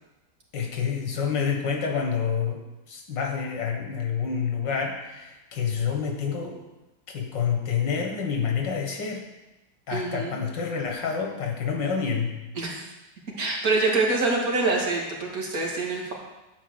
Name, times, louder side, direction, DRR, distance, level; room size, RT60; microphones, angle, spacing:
voice 1, 0.5-2.6 2.9-6.6 7.1-9.2 9.9-12.4, left 6 dB, 90° left, 2 dB, 2.2 m, -28 dB
voice 2, 9.9-10.4 12.5-12.9 13.4-16.1, right 3 dB, 55° right, -2 dB, 2.4 m, -25 dB
11.5 x 4.7 x 7.9 m, 1.0 s
omnidirectional pair, 1.9 m